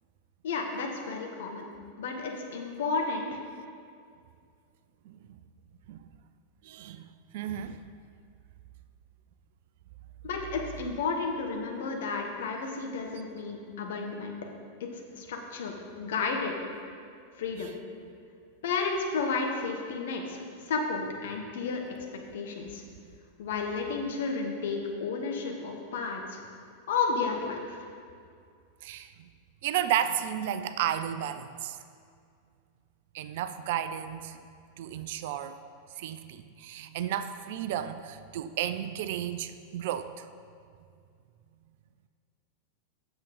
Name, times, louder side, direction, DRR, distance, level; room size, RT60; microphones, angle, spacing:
voice 1, 0.4-1.7 2.0-3.4 10.2-14.3 14.8-16.5 17.4-17.7 18.6-21.8 22.3-22.8 23.4-26.4 26.9-27.8, left 4 dB, 60° left, 2 dB, 1.2 m, -32 dB
voice 2, 5.1-5.4 5.9-6.0 6.6-7.1 7.3-7.8 28.8-29.3 29.6-31.8 33.1-34.4 34.8-35.6 36.0-40.3, right 10 dB, 50° right, 11 dB, 0.4 m, -33 dB
8.2 x 6.8 x 5.2 m, 2.3 s
figure-of-eight pair, 90°, 0 cm